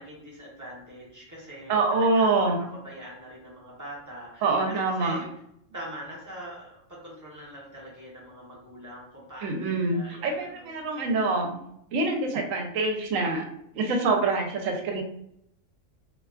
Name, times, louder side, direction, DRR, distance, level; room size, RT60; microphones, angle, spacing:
voice 1, 0.0-5.2 5.7-9.5 9.8-10.7, right 1 dB, 20° right, -6 dB, 0.6 m, -43 dB
voice 2, 1.7-2.6 4.4-5.2 9.4-11.6 11.9-13.5 13.7-15.0, right 3 dB, 80° right, 3 dB, 0.9 m, -25 dB
2.6 x 2.3 x 2.3 m, 0.75 s
omnidirectional pair, 1.4 m